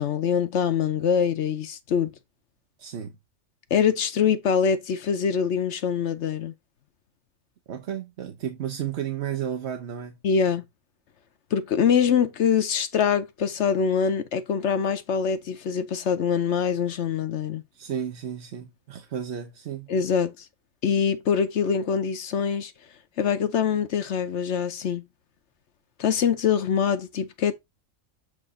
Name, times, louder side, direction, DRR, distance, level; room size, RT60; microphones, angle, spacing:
voice 1, 0.0-2.1 3.7-6.5 10.2-10.6 11.5-17.6 19.9-20.3 20.8-22.7 23.2-25.0 26.0-27.5, left 7 dB, 60° left, 1.0 m, -24 dB
voice 2, 2.8-3.1 7.7-10.2 17.7-19.9, right 9 dB, 55° right, 1.0 m, -33 dB
7.8 x 2.7 x 4.9 m
omnidirectional pair, 1.4 m